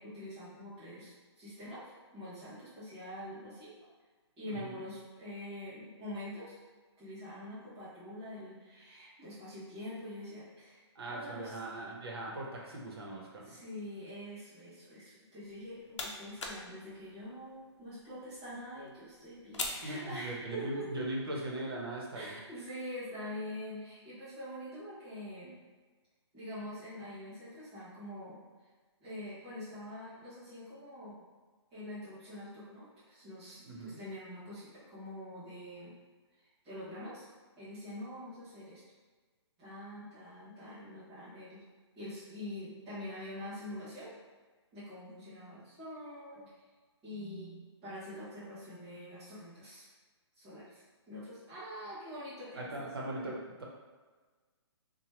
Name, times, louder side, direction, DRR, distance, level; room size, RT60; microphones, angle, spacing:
voice 1, 0.0-1.8 2.1-3.7 4.4-6.6 7.0-10.8 11.0-11.5 13.4-20.9 22.1-25.5 26.3-28.4 29.0-31.2 31.7-35.9 36.6-37.3 37.6-38.8 39.6-41.6 41.9-44.1 44.7-46.4 47.0-49.8 50.4-53.3, left 1 dB, 5° right, -16 dB, 0.3 m, -45 dB
voice 2, 4.4-4.8 10.9-13.6 19.8-22.4 33.6-34.0 52.6-53.6, right 1 dB, 55° right, -2 dB, 0.8 m, -40 dB
sound 1, 15.4-20.8, left 3 dB, 85° left, 0.6 m, -45 dB
2.9 x 2.1 x 3.0 m, 1.4 s
hypercardioid pair, 175°, 15 cm